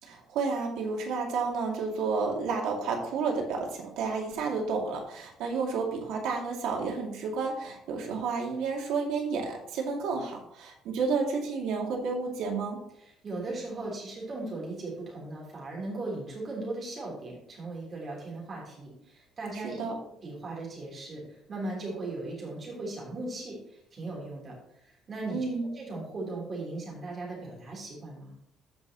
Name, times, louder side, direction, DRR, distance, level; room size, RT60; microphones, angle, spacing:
voice 1, 0.0-12.8 19.6-20.0 25.3-25.7, right 4 dB, 75° right, 0 dB, 2.2 m, -31 dB
voice 2, 13.0-19.9 20.2-24.6 25.1-25.5 25.8-28.3, right 2 dB, 25° right, -3 dB, 3.5 m, -38 dB
14.5 x 5.5 x 3.0 m, 0.77 s
cardioid pair, 175°, 0 cm